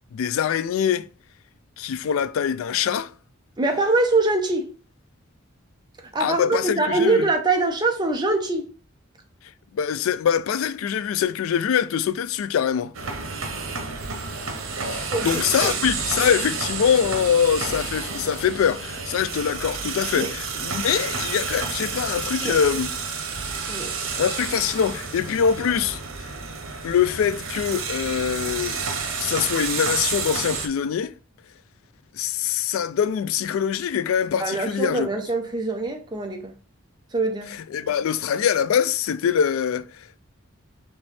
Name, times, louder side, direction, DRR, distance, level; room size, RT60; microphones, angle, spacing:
voice 1, 0.1-1.1 1.8-3.1 6.2-7.3 9.7-12.9 14.9-22.9 24.2-26.3 26.8-28.8 29.2-31.1 32.1-35.1 37.5-40.2, left 8 dB, 85° left, 0.3 m, -24 dB
voice 2, 3.6-4.7 6.1-8.7 15.1-15.7 20.1-20.3 22.4-22.6 23.7-23.9 34.4-36.5 37.1-37.6, right 2 dB, 20° right, 0.6 m, -23 dB
sound 1, 12.9-30.7, right 5 dB, 85° right, 0.9 m, -30 dB
4.3 x 3.1 x 3.2 m
head